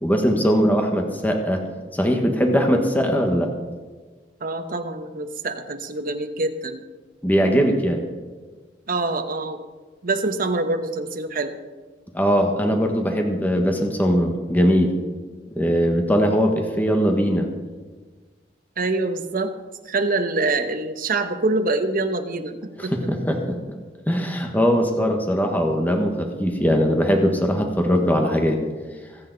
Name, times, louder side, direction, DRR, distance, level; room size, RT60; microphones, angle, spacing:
voice 1, 0.0-1.6 1.9-3.5 7.2-8.0 12.1-14.9 15.5-17.5 22.8-23.6 24.1-28.6, equal, 10° left, 3 dB, 1.3 m, -20 dB
voice 2, 4.4-6.8 8.9-9.6 10.0-11.6 18.8-19.5 19.9-22.9, right 2 dB, 50° right, 6 dB, 1.1 m, -25 dB
25.0 x 8.7 x 4.0 m, 1.4 s
head